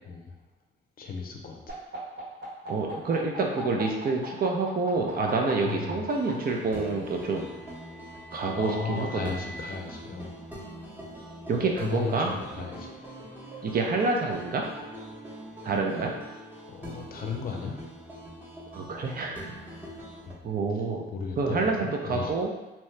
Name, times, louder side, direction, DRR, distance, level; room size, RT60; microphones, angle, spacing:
voice 1, 1.0-1.8 5.6-6.0 8.5-10.4 11.8-12.9 16.7-17.8 19.7-19.9 20.2-20.4 20.7-20.8 21.1-22.4, left 5 dB, 50° left, 2 dB, 0.6 m, -35 dB
sound 1, 1.7-6.3 7.4-9.7, right 2 dB, 70° right, 1.5 m, -41 dB
voice 2, 2.7-7.5 8.3-9.3 11.5-12.4 13.6-14.6 15.6-16.1 18.7-19.6 20.4-21.1 21.4-22.5, right 3 dB, 50° right, 1 dB, 0.6 m, -27 dB
sound 2, 6.1-20.3, right 1 dB, 10° right, 0.9 m, -43 dB
2.8 x 2.2 x 3.2 m, 1.1 s
cardioid pair, 90°, 20 cm